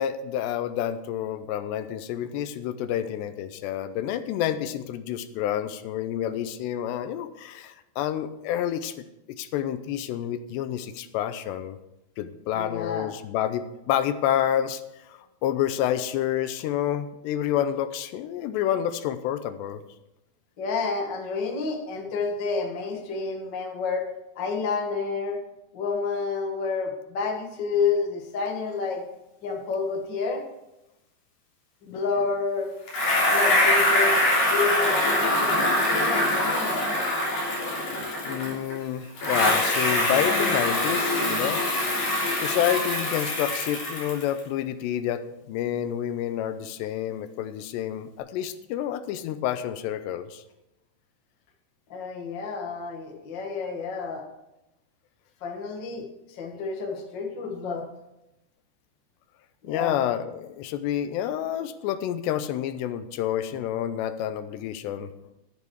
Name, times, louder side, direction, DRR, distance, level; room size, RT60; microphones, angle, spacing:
voice 1, 0.0-8.9 9.3-11.8 12.2-14.8 15.1-19.8 38.3-41.6 42.4-50.4 56.0-56.1 59.6-65.1, left 10 dB, 85° left, 11 dB, 2.8 m, -29 dB
voice 2, 12.5-13.1 20.6-24.1 24.3-25.4 25.7-29.0 29.4-30.4 31.8-32.7 33.3-34.2 34.4-36.8 51.9-54.3 55.4-57.9 59.6-60.0, left 4 dB, 65° left, 2 dB, 1.1 m, -29 dB
Bicycle, 32.9-38.7 39.2-44.4, left 1 dB, 45° left, 4.5 m, -24 dB
11.0 x 10.5 x 4.7 m, 0.92 s
omnidirectional pair, 4.9 m